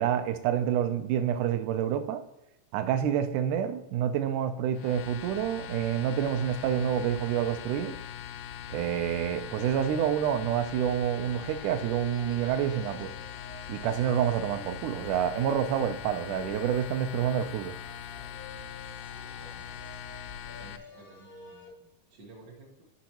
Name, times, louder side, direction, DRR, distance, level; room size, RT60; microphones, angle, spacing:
voice 1, 0.0-2.2 2.7-8.0 8.7-13.1 13.7-17.8, right 9 dB, 85° right, 9 dB, 2.2 m, -28 dB
sound 1, 4.7-20.8, left 9 dB, 80° left, 1.7 m, -42 dB
sound 2, 10.4-21.7, left 2 dB, 50° left, 0.6 m, -51 dB
voice 2, 19.1-20.2 20.5-22.8, right 2 dB, 50° right, -2 dB, 1.3 m, -54 dB
10.5 x 5.7 x 2.9 m, 0.90 s
omnidirectional pair, 3.5 m